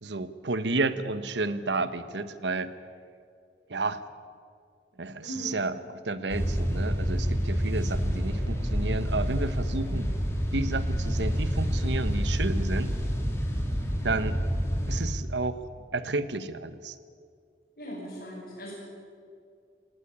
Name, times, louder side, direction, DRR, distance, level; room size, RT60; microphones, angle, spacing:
voice 1, 0.0-2.7 3.7-4.0 5.0-10.1 10.5-13.0 14.0-14.4 14.9-15.6 15.9-17.0, right 3 dB, 90° right, 13 dB, 1.1 m, -31 dB
voice 2, 5.2-5.6 9.7-10.0 17.8-18.7, equal, 60° left, -7 dB, 6.8 m, -39 dB
sound 1, 6.3-15.1, equal, 15° left, 3.2 m, -28 dB
19.0 x 17.0 x 10.0 m, 2.3 s
head